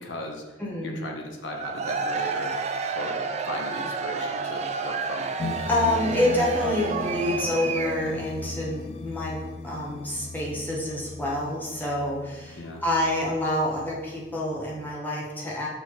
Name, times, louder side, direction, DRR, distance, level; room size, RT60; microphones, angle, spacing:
voice 1, 0.0-0.4 0.8-2.5 2.9-3.2 3.5-5.3 12.5-12.8, left 1 dB, 90° left, 1 dB, 1.1 m, -36 dB
voice 2, 0.6-1.1 5.7-15.7, left 1 dB, 10° left, -5 dB, 1.0 m, -27 dB
Cheering / Crowd, 1.5-8.2, right 5 dB, 40° right, 0.4 m, -30 dB
sound 1, 5.4-15.0, left 3 dB, 30° left, 0.3 m, -38 dB
6.5 x 3.4 x 4.6 m, 1.1 s
head